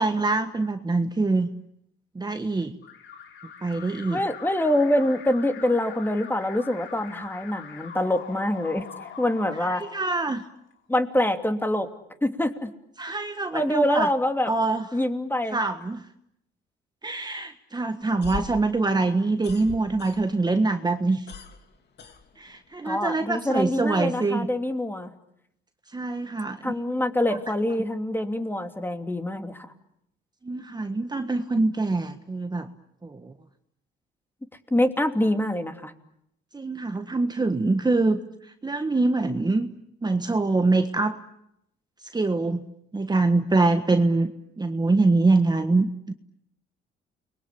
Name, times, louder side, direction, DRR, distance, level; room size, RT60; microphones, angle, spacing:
voice 1, 0.0-1.5 2.1-2.7 3.6-4.2 9.6-10.4 13.0-14.1 14.5-14.9 15.5-16.1 17.0-21.3 22.4-24.5 25.9-26.8 27.3-27.4 30.4-32.7 33.0-33.3 36.5-39.7 40.0-41.2 42.1-42.6 42.9-44.3 44.6-46.1, right 3 dB, 20° right, 7 dB, 1.5 m, -24 dB
Alarm, 2.8-10.7, left 7 dB, 75° left, 3.6 m, -43 dB
voice 2, 4.1-8.9 9.2-9.8 10.9-11.9 12.2-12.7 13.5-14.5 14.9-15.6 22.8-25.1 26.6-29.7 34.7-35.9, left 1 dB, 10° left, 7 dB, 2.9 m, -25 dB
sound 1, 18.0-20.6 20.9-22.8, left 5 dB, 55° left, 3.3 m, -40 dB
29.5 x 22.0 x 8.6 m, 0.76 s
cardioid pair, 90°, 20 cm